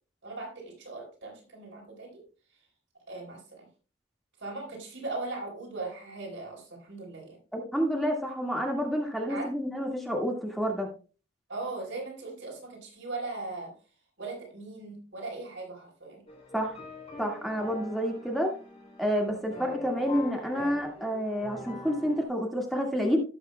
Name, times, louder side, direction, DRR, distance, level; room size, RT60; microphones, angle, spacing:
voice 1, 0.2-2.2 2.5-2.6 3.1-3.7 4.4-7.4 9.3-9.5 11.5-13.7 14.2-16.2, right 3 dB, 75° right, -1 dB, 4.4 m, -39 dB
voice 2, 7.5-10.9 16.5-16.7 17.2-18.5 19.0-23.2, equal, ahead, 0 dB, 1.8 m, -29 dB
sound 1, 16.3-22.3, left 2 dB, 30° left, 2.6 m, -44 dB
17.5 x 6.6 x 2.2 m, 0.35 s
head